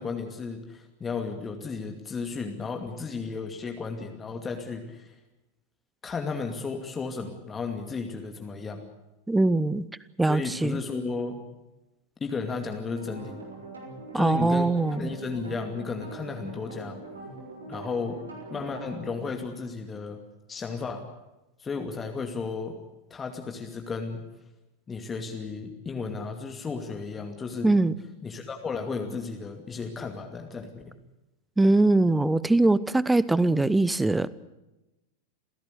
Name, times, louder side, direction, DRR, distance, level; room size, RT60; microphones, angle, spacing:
voice 1, 0.0-5.1 6.0-8.8 10.2-11.4 12.2-13.4 14.1-14.7 15.0-17.0 17.7-18.2 18.5-20.2 20.5-21.1 21.6-22.8 23.1-24.2 24.9-27.7 28.2-30.9, left 4 dB, 20° left, 2.4 m, -34 dB
voice 2, 9.3-9.8 10.2-10.8 14.1-15.1 27.6-27.9 31.6-34.3, right 2 dB, 5° right, 0.9 m, -22 dB
sound 1, 12.8-19.3, right 2 dB, 75° right, 6.1 m, -42 dB
28.0 x 16.5 x 8.3 m
figure-of-eight pair, 90°, 0 cm